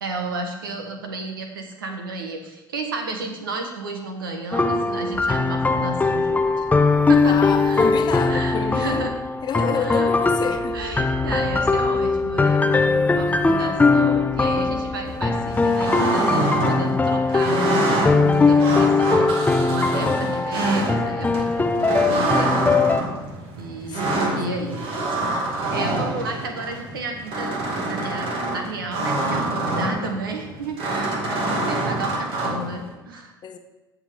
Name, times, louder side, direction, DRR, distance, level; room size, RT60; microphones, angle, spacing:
voice 1, 0.0-6.6 7.1-7.9 8.3-9.2 9.7-10.1 10.7-22.6 23.6-24.8 25.3-27.6 27.9-33.3, right 2 dB, 75° right, 4 dB, 1.2 m, -32 dB
sound 1, 4.5-23.0, left 3 dB, 15° left, 0.6 m, -20 dB
sound 2, 5.1-15.7, left 3 dB, 15° right, 2.3 m, -40 dB
voice 2, 7.2-9.1 9.4-10.7 23.9-24.5 33.4-33.6, left 7 dB, 40° left, 6 dB, 1.1 m, -29 dB
sound 3, 15.1-32.9, right 2 dB, 50° right, 2.1 m, -26 dB
15.5 x 6.1 x 3.5 m, 1.1 s
figure-of-eight pair, 65°, 12 cm